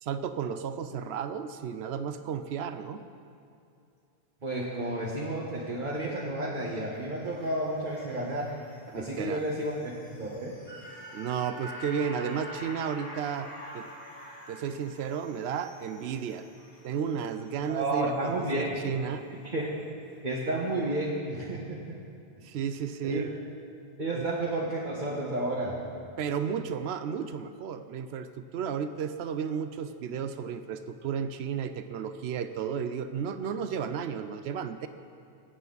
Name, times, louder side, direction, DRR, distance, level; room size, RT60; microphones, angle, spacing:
voice 1, 0.0-3.0 8.9-9.4 11.1-13.9 14.5-16.5 16.8-19.2 22.4-23.4 24.1-24.3 26.2-34.9, right 7 dB, 85° right, 10 dB, 0.9 m, -33 dB
voice 2, 4.4-8.5 8.9-10.5 17.7-18.7 19.4-19.7 20.2-22.0 23.0-23.2 24.0-25.8, right 1 dB, 50° right, -5 dB, 1.6 m, -31 dB
klaxon action, 6.9-19.3 19.6-19.7, equal, 70° left, 3.9 m, -47 dB
24.5 x 8.3 x 4.0 m, 2.5 s
omnidirectional pair, 1.1 m